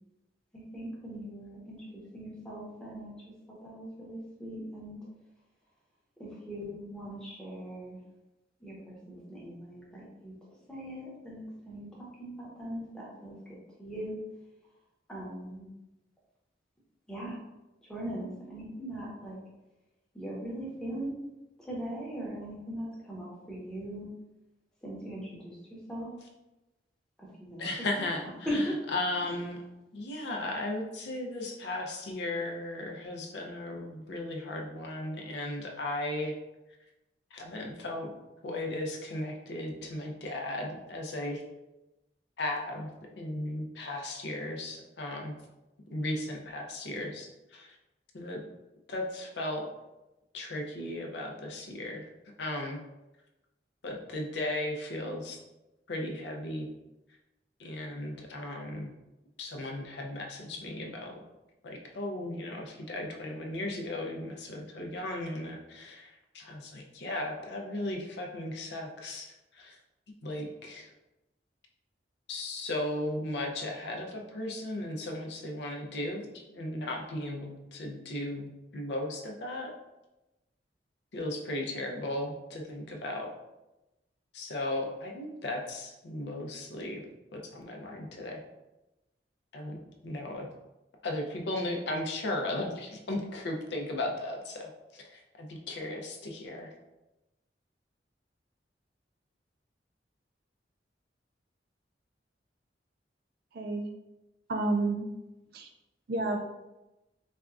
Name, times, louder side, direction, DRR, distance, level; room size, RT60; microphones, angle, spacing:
voice 1, 0.5-3.3 3.6-5.0 6.2-8.0 8.6-10.3 10.7-14.2 15.1-15.7 17.1-17.4 17.9-19.4 20.1-21.1 21.6-24.1 24.8-25.6 25.9-26.1 27.4-27.7 28.0-28.1 28.5-28.7, equal, 5° left, -5 dB, 0.8 m, -39 dB
voice 2, 27.6-29.6 29.9-36.3 37.3-38.1 38.4-41.4 42.4-42.9 43.2-45.4 45.9-47.7 48.1-48.4 48.9-49.7 50.3-52.0 52.4-52.8 53.8-55.4 55.9-56.7 57.6-58.9 59.4-61.2 61.6-69.3 69.6-69.8 70.2-70.9 72.3-79.7 81.1-83.3 84.3-87.0 87.3-88.4 89.5-90.5 91.0-94.7 95.1-96.7, left 1 dB, 65° left, 1 dB, 0.5 m, -36 dB
voice 3, 104.5-105.1 105.5-105.7 106.1-106.4, right 2 dB, 60° right, 4 dB, 0.4 m, -29 dB
4.2 x 2.3 x 2.4 m, 0.99 s
head